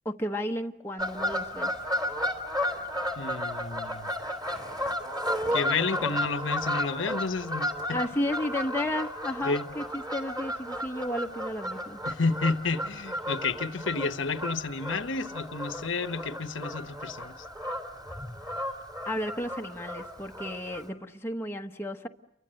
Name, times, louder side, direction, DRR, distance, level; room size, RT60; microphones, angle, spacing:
voice 1, 0.0-1.7 7.9-12.0 19.1-22.1, left 1 dB, 10° left, 1.2 m, -33 dB
Fowl / Bird vocalization bird call bird song, 1.0-20.9, equal, 20° right, 3.4 m, -33 dB
voice 2, 3.2-4.1 5.5-8.0 9.4-9.7 12.0-17.4, left 4 dB, 70° left, 1.3 m, -31 dB
30.0 x 24.5 x 7.8 m
head